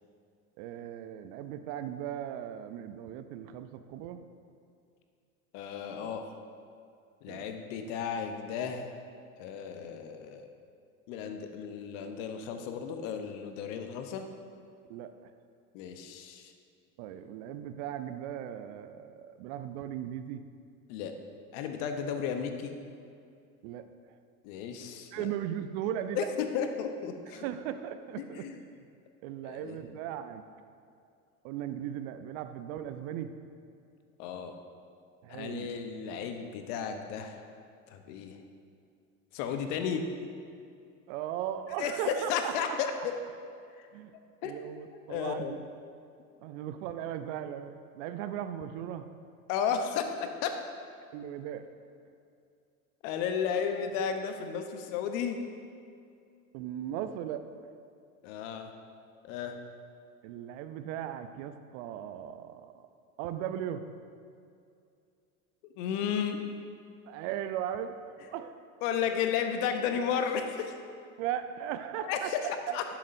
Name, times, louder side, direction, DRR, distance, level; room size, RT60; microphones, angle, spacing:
voice 1, 0.6-4.2 7.3-7.4 14.9-15.3 17.0-20.4 23.6-23.9 25.1-26.3 27.3-28.4 29.2-30.4 31.4-33.3 35.2-35.7 41.1-42.5 43.9-44.1 44.4-45.6 46.4-49.1 51.1-51.7 56.5-57.5 60.2-62.9 63.2-63.8 67.1-68.6 71.2-72.3, right 10 dB, 60° right, 10 dB, 0.7 m, -37 dB
voice 2, 5.5-6.3 7.2-9.0 9.4-10.5 11.1-14.3 15.7-16.5 20.9-21.1 21.5-22.7 24.4-25.3 26.1-27.4 28.2-28.6 29.4-29.8 34.2-34.6 35.3-37.4 37.9-38.4 39.3-40.0 41.8-43.1 43.8-43.9 44.4-44.5 44.9-45.6 49.5-50.5 53.0-55.4 58.2-58.7 59.2-59.6 65.6-66.4 68.8-70.7 72.0-73.0, left 7 dB, 65° left, 6 dB, 1.0 m, -33 dB
11.5 x 7.3 x 2.7 m, 2.4 s
hypercardioid pair, 75°, 43 cm